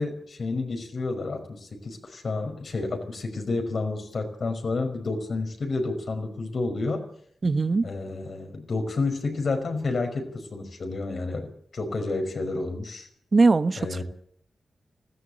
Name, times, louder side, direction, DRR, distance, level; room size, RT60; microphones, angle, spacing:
voice 1, 0.0-7.0 7.8-13.1 13.8-14.0, left 3 dB, 65° left, 5.2 m, -30 dB
voice 2, 7.4-7.9 13.3-14.0, right 3 dB, 50° right, 1.2 m, -21 dB
20.0 x 15.0 x 8.9 m
cardioid pair, 60°, 0 cm